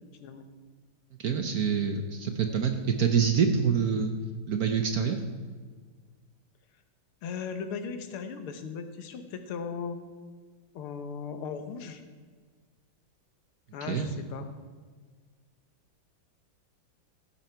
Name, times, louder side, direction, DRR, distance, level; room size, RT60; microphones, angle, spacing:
voice 1, 1.2-4.1 4.5-5.2 13.9-14.2, right 6 dB, 55° right, 6 dB, 1.1 m, -26 dB
voice 2, 7.2-10.0 10.7-12.0 13.7-14.5, left 6 dB, 85° left, 8 dB, 1.9 m, -37 dB
16.0 x 8.9 x 4.5 m, 1.5 s
omnidirectional pair, 2.3 m